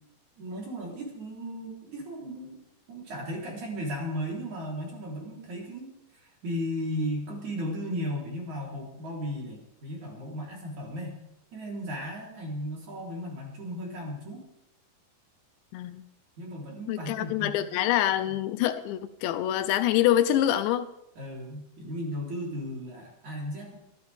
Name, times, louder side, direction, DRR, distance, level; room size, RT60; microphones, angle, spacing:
voice 1, 0.4-2.6 2.9-5.9 6.1-11.2 11.5-14.4 16.4-17.6 18.3-18.4 21.2-23.8, equal, 40° right, -2 dB, 4.9 m, -35 dB
voice 2, 15.7-16.0 16.9-20.9, left 12 dB, 80° left, 11 dB, 2.9 m, -25 dB
24.5 x 13.5 x 3.6 m, 0.81 s
omnidirectional pair, 5.3 m